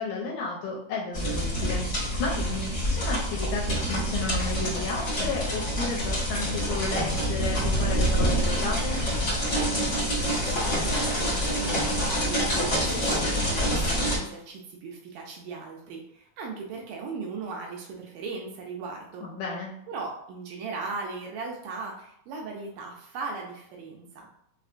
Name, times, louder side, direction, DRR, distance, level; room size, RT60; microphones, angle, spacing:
voice 1, 0.0-9.0 19.2-19.7, left 4 dB, 75° left, -3 dB, 2.0 m, -33 dB
sound 1, 1.1-14.2, equal, 50° left, 1.0 m, -26 dB
voice 2, 9.9-19.3 19.9-24.3, right 4 dB, 80° right, 0 dB, 2.0 m, -38 dB
5.5 x 2.1 x 2.5 m, 0.74 s
omnidirectional pair, 4.0 m